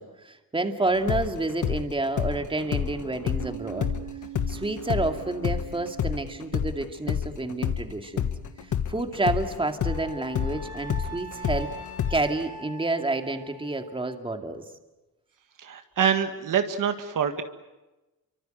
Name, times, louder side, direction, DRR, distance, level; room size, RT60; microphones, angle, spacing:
voice 1, 0.0-3.9 4.5-8.3 8.6-11.7 12.1-14.6, right 2 dB, 15° right, 5 dB, 2.4 m, -29 dB
sound 1, 0.9-7.9 8.2-12.4, left 8 dB, 55° left, 1.5 m, -29 dB
Piano, 3.4-10.6, right 13 dB, 85° right, 2.3 m, -45 dB
Wind instrument woodwind instrument, 9.8-14.2, right 2 dB, 20° left, 3.1 m, -43 dB
voice 2, 15.6-17.4, right 8 dB, 60° right, 7 dB, 1.9 m, -25 dB
29.0 x 25.0 x 8.0 m, 1.1 s
cardioid pair, 125°, 35 cm